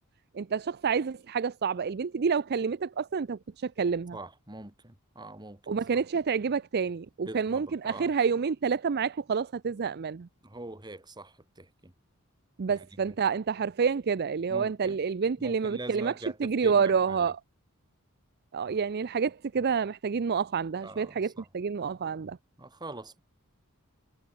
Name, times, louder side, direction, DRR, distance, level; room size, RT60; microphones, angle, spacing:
voice 1, 0.3-4.2 5.7-10.3 12.6-16.1 16.4-17.4 18.5-22.4, right 6 dB, 45° right, 0.5 m, -28 dB
voice 2, 4.1-5.8 7.2-8.1 10.4-11.9 12.7-12.9 14.5-15.0 15.4-17.3 20.8-21.5 22.6-23.2, right 2 dB, 20° right, 2.6 m, -43 dB
head